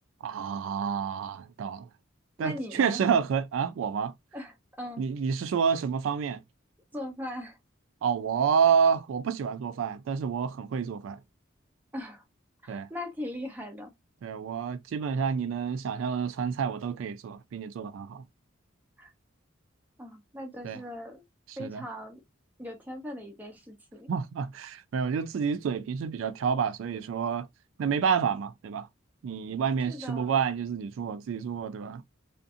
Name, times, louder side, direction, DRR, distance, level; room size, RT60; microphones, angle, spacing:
voice 1, 0.2-1.9 2.4-4.1 5.0-6.4 8.0-11.2 12.7-12.9 14.2-18.2 20.6-20.8 21.5-21.8 24.1-27.5 27.8-28.9 29.2-32.0, right 6 dB, 80° right, 0.3 m, -29 dB
voice 2, 2.4-3.0 4.3-5.0 6.9-7.6 11.9-12.2 12.6-13.9 19.0-19.1 20.0-21.2 21.6-22.2 22.6-24.1 29.9-30.4, left 1 dB, 10° right, 0.7 m, -39 dB
2.5 x 2.5 x 2.4 m
head